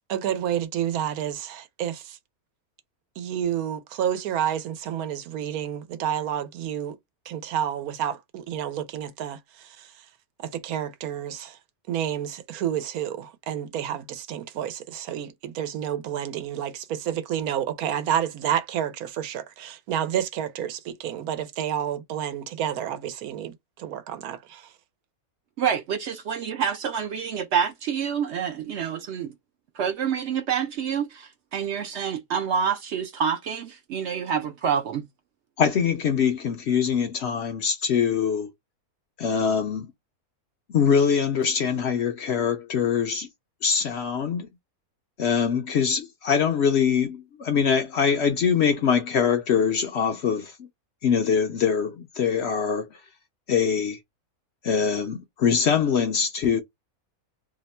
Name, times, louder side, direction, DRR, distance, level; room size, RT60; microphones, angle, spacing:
voice 1, 0.1-2.2 3.2-7.0 7.3-10.1 10.4-11.6 11.9-24.7, right 10 dB, 85° right, 1.1 m, -30 dB
voice 2, 25.6-29.3 29.8-35.1, right 7 dB, 65° right, 0.7 m, -27 dB
voice 3, 35.6-38.5 39.2-39.9 40.7-43.3 43.6-44.5 45.2-50.5 51.0-52.9 53.5-54.0 54.6-56.6, left 7 dB, 60° left, 0.7 m, -23 dB
2.8 x 2.2 x 4.1 m
omnidirectional pair, 1.5 m